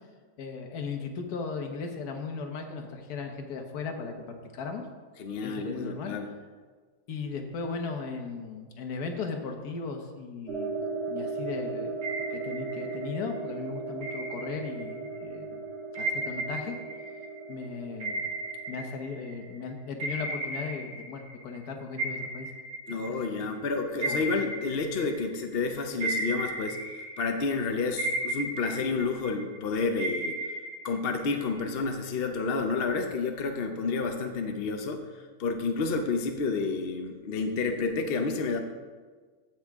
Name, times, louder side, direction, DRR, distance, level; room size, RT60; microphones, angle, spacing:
voice 1, 0.4-4.9 5.4-6.2 7.1-12.0 12.3-15.6 16.0-16.8 17.5-18.2 18.7-22.5 22.9-23.2 24.0-24.3, left 4 dB, 70° left, 3 dB, 1.6 m, -37 dB
voice 2, 5.2-6.3 22.9-26.8 27.2-30.5 30.8-38.6, left 4 dB, 55° left, 4 dB, 0.7 m, -30 dB
sound 1, 10.5-20.0, right 4 dB, 60° right, 2.3 m, -37 dB
sound 2, 12.0-13.3 14.0-15.2 15.9-19.6 20.0-21.7 22.0-25.5 26.0-27.6 28.0-29.6 30.0-31.7, right 2 dB, 40° right, 1.5 m, -35 dB
15.5 x 6.2 x 3.5 m, 1.5 s
omnidirectional pair, 1.8 m